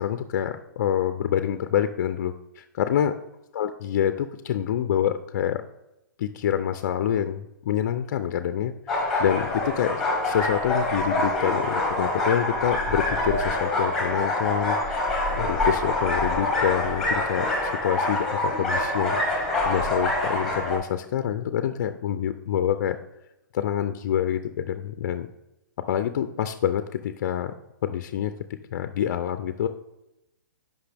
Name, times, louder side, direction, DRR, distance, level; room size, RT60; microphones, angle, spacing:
voice 1, 0.0-3.1 3.5-5.6 6.2-23.0 23.5-25.3 25.9-27.5 27.8-28.3 28.7-29.7, left 10 dB, 50° left, 9 dB, 0.4 m, -27 dB
sound 1, 8.9-20.8, left 2 dB, ahead, 1.5 m, -25 dB
8.1 x 5.3 x 3.4 m, 0.89 s
hypercardioid pair, 155°, 11 cm